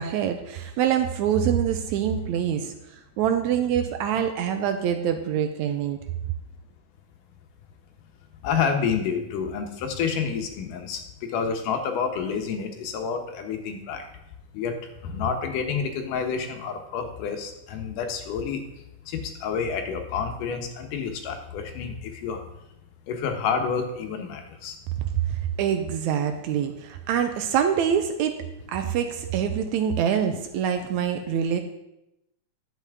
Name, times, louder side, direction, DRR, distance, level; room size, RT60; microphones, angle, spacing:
voice 1, 0.0-2.7 3.2-6.0 25.1-28.4 28.7-31.6, right 8 dB, 80° right, 7 dB, 1.9 m, -25 dB
voice 2, 8.4-14.0 14.5-14.7 15.0-18.6 19.1-22.4 23.1-24.8, left 6 dB, 85° left, 5 dB, 2.6 m, -29 dB
11.0 x 8.2 x 3.5 m, 0.86 s
omnidirectional pair, 3.7 m